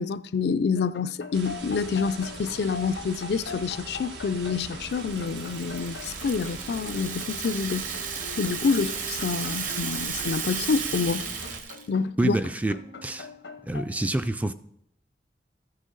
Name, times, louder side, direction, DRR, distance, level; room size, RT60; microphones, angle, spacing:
voice 1, 0.0-7.9 8.4-11.3 11.9-12.4, left 5 dB, 65° left, 0.4 m, -27 dB
sound 1, 0.8-13.8, left 4 dB, 90° left, 0.8 m, -43 dB
sound 2, 1.3-11.6, right 3 dB, 80° right, 1.2 m, -41 dB
Rattle (instrument), 4.9-11.9, right 6 dB, 45° right, 1.0 m, -34 dB
voice 2, 12.2-12.8 13.0-13.3 13.6-14.5, right 1 dB, 10° right, 0.3 m, -26 dB
14.5 x 6.3 x 3.9 m
head